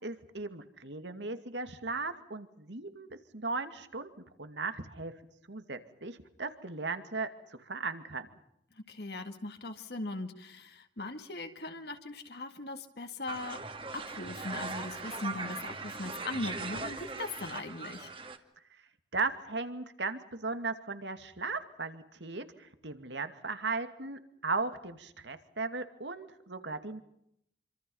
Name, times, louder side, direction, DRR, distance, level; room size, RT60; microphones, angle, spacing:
voice 1, 0.0-3.1 3.3-4.1 4.4-5.1 5.5-7.3 7.6-8.3 19.1-27.0, right 3 dB, 80° right, 9 dB, 2.4 m, -37 dB
voice 2, 8.8-13.6 13.9-18.1, left 2 dB, 60° left, 5 dB, 2.1 m, -40 dB
sound 1, 13.3-18.4, right 3 dB, 30° right, 2.1 m, -40 dB
27.5 x 26.0 x 5.6 m, 0.73 s
head